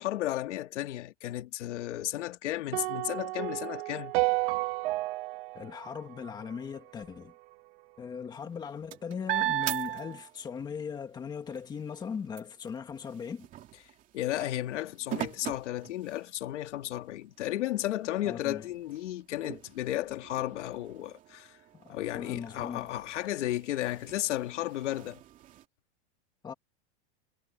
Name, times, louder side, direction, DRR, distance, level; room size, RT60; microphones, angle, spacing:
voice 1, 0.0-4.1 14.1-21.6 21.9-25.2, left 14 dB, 90° left, 2.7 m, -34 dB
sound 1, 2.7-7.0, right 22 dB, 50° right, 2.0 m, -32 dB
voice 2, 5.5-7.3 8.0-13.5 18.2-18.6 21.7-23.0 26.4-26.5, left 6 dB, 10° left, 1.8 m, -39 dB
sound 2, 8.4-10.7 11.1-16.6 17.2-17.3 17.7-25.6, right 14 dB, 20° right, 2.5 m, -39 dB
supercardioid pair, 180°, 35 cm